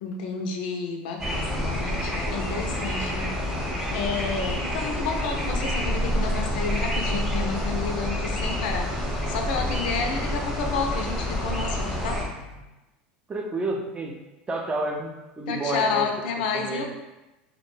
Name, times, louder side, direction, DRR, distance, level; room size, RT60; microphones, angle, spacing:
voice 1, 0.0-3.4 3.9-8.9 9.3-12.2 15.5-16.8, left 5 dB, 75° left, 3 dB, 0.4 m, -30 dB
sound 1, 1.2-12.2, equal, ahead, 0.8 m, -28 dB
sound 2, 5.9-12.6, left 1 dB, 85° right, 0.5 m, -43 dB
voice 2, 13.3-14.2 14.5-16.1 16.5-16.8, right 2 dB, 20° right, 1 dB, 0.4 m, -30 dB
2.3 x 2.1 x 3.0 m, 1.0 s
supercardioid pair, 100°, 5 cm